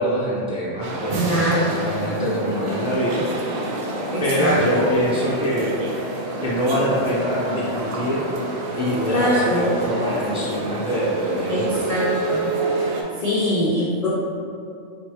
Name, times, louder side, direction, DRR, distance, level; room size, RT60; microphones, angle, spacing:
voice 1, 0.0-3.2 4.2-5.7 6.4-8.3 8.7-11.8, equal, 5° right, -8 dB, 0.5 m, -24 dB
sound 1, 0.8-13.0, right 2 dB, 60° right, 0.6 m, -28 dB
voice 2, 1.2-1.7 4.1-4.8 9.1-9.7 11.5-12.5 13.2-14.1, equal, 45° left, -8 dB, 0.5 m, -22 dB
3.9 x 3.2 x 3.0 m, 2.4 s
omnidirectional pair, 1.4 m